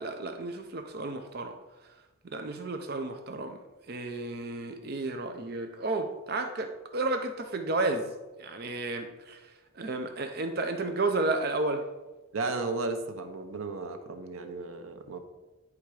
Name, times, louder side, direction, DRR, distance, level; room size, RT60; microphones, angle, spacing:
voice 1, 0.0-1.5 2.2-3.6 3.9-8.1 8.4-9.4 9.8-11.8, right 2 dB, 50° right, 6 dB, 0.5 m, -32 dB
voice 2, 12.3-15.2, right 3 dB, 85° right, 7 dB, 0.7 m, -34 dB
9.6 x 3.5 x 4.8 m, 1.1 s
head